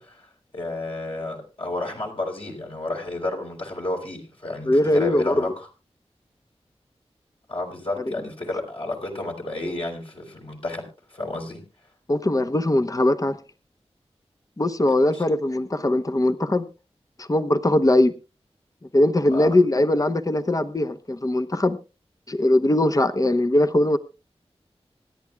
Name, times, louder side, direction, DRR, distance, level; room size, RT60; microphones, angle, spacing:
voice 1, 0.0-5.7 7.5-11.6 15.1-15.2 19.3-19.6, left 2 dB, 55° left, 4.0 m, -31 dB
voice 2, 4.6-5.4 12.1-13.4 14.6-16.6 17.2-18.1 18.9-21.8 22.3-24.0, left 1 dB, 30° left, 0.9 m, -20 dB
26.0 x 10.5 x 2.3 m
wide cardioid pair, 65°, 11 cm